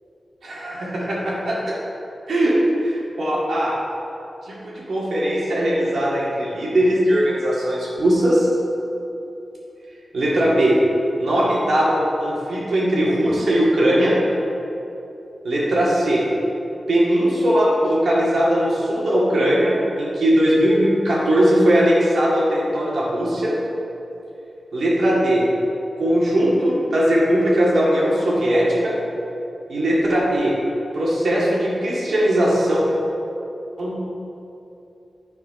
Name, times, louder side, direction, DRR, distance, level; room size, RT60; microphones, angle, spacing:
voice 1, 0.4-1.7 2.3-2.5 2.8-3.7 4.5-8.5 10.1-10.7 11.2-14.1 15.4-16.2 16.9-23.5 24.7-25.4 26.0-28.9 29.7-30.5 30.9-32.8 33.8-34.1, equal, 70° right, -6 dB, 2.1 m, -19 dB
10.0 x 4.8 x 5.2 m, 2.8 s
wide cardioid pair, 160°, 0 cm